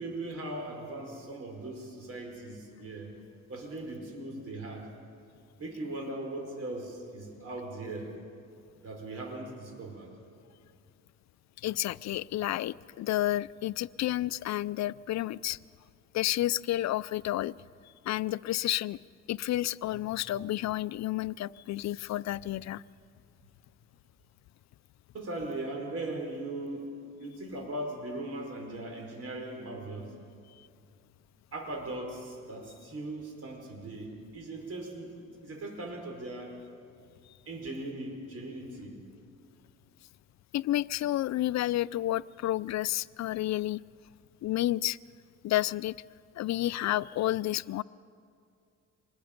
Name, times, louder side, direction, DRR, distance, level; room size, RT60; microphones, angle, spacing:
voice 1, 0.0-3.1 3.5-4.9 5.6-8.2 8.8-10.1 19.9-20.0 25.1-26.9 27.2-30.1 31.5-36.6 37.5-39.0, right 2 dB, 55° right, 2 dB, 4.8 m, -39 dB
voice 2, 11.6-15.6 16.1-17.5 18.0-19.0 19.3-22.8 40.5-43.8 44.4-45.0 45.4-46.0 46.4-47.8, left 14 dB, 65° left, 19 dB, 0.5 m, -30 dB
26.5 x 21.0 x 5.2 m, 2.4 s
cardioid pair, 90°, 30 cm